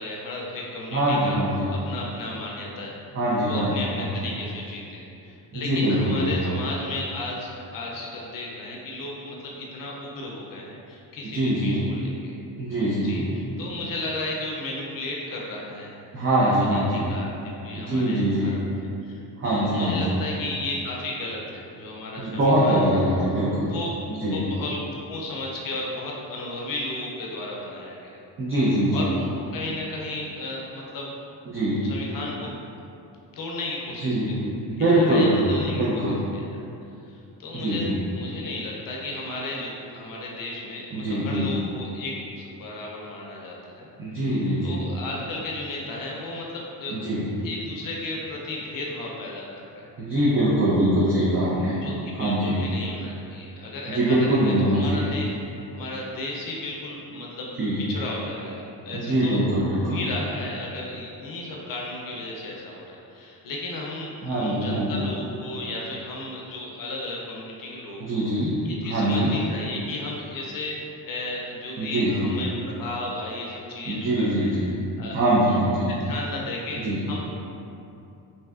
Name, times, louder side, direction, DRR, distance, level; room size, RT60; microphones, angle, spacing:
voice 1, 0.0-1.4 1.7-3.0 3.4-12.4 13.0-16.0 16.4-17.3 17.6-23.0 23.6-23.9 24.3-24.8 25.1-28.2 28.9-29.2 29.5-31.1 31.8-32.6 33.3-34.3 34.8-36.6 37.1-43.9 44.2-44.3 44.6-46.9 47.4-49.9 51.8-55.3 55.7-57.5 57.9-59.4 59.8-68.3 68.6-70.7 71.1-74.5 75.0-75.2 75.4-75.6 76.0-76.8 77.1-77.2, left 2 dB, 55° left, -3 dB, 0.5 m, -34 dB
voice 2, 0.9-1.7 3.1-4.1 5.5-6.5 11.2-11.9 12.6-13.3 16.1-17.1 17.7-18.5 19.4-20.2 22.2-23.7 24.1-24.4 28.4-29.1 31.5-31.9 34.0-34.4 34.7-36.2 37.5-37.9 40.9-41.5 44.0-44.8 46.9-47.3 50.0-51.8 52.2-52.6 53.9-55.1 57.6-57.8 58.9-60.0 64.2-65.1 68.0-68.6 68.9-69.3 71.8-72.3 73.9-74.7 75.1-75.9 76.8-77.0, right 1 dB, 35° right, -8 dB, 0.5 m, -23 dB
3.2 x 2.6 x 2.4 m, 2.7 s
cardioid pair, 110°, 39 cm